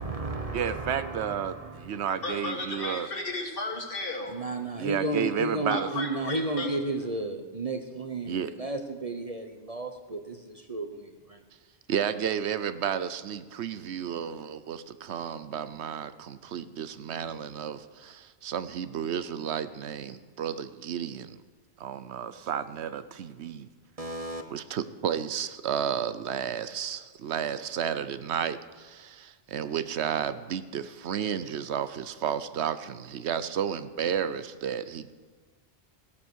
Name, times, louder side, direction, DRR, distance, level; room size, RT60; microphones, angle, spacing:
voice 1, 0.0-2.0 4.3-11.4 24.0-24.4, right 2 dB, 35° right, 6 dB, 0.9 m, -33 dB
voice 2, 0.5-3.1 4.8-5.9 8.3-8.5 11.9-21.4 21.8-23.7 24.5-35.1, right 8 dB, 75° right, 12 dB, 1.0 m, -32 dB
voice 3, 2.2-4.3 5.7-6.7, left 2 dB, 55° left, 2 dB, 2.0 m, -34 dB
16.0 x 8.7 x 6.3 m, 1.4 s
omnidirectional pair, 1.1 m